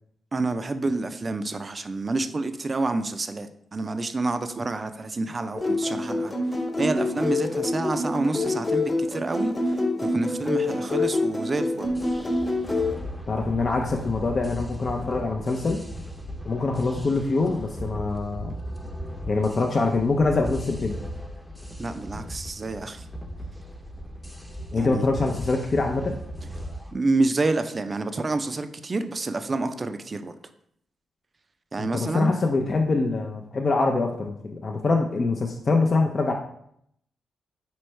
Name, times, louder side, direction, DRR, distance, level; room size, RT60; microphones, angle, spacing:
voice 1, 0.3-6.3 6.8-11.9 21.8-23.0 24.7-25.0 26.9-30.3 31.7-32.3, right 3 dB, 40° right, 9 dB, 0.4 m, -28 dB
sound 1, 5.6-12.9, left 2 dB, 30° left, 1.1 m, -26 dB
sound 2, 11.8-26.9, equal, 5° left, 0.7 m, -37 dB
voice 2, 13.3-15.8 16.5-18.5 19.3-21.0 24.7-26.1 31.8-36.3, left 3 dB, 50° left, 1 dB, 0.5 m, -24 dB
4.4 x 3.1 x 3.1 m, 0.69 s
supercardioid pair, 50°, 0 cm